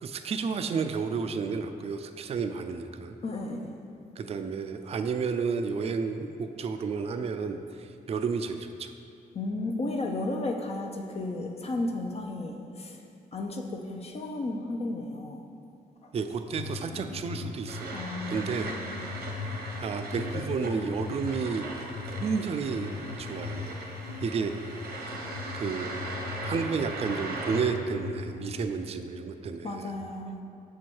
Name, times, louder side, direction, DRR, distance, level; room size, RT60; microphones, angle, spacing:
voice 1, 0.0-3.1 4.2-8.9 16.1-18.0 18.3-18.7 19.8-21.6 22.2-22.9 23.2-23.8 24.2-24.5 25.5-26.0 26.4-29.9, right 5 dB, 40° right, 7 dB, 0.4 m, -31 dB
voice 2, 3.2-3.8 9.3-13.0 13.3-15.4 16.0-16.1 17.9-19.0 29.6-30.4, left 2 dB, 40° left, 2 dB, 0.6 m, -34 dB
sound 1, 16.6-28.6, left 4 dB, 85° left, 0.6 m, -39 dB
sound 2, 17.7-27.6, right 2 dB, 85° right, 0.9 m, -39 dB
6.2 x 4.6 x 4.4 m, 2.6 s
cardioid pair, 95°, 16 cm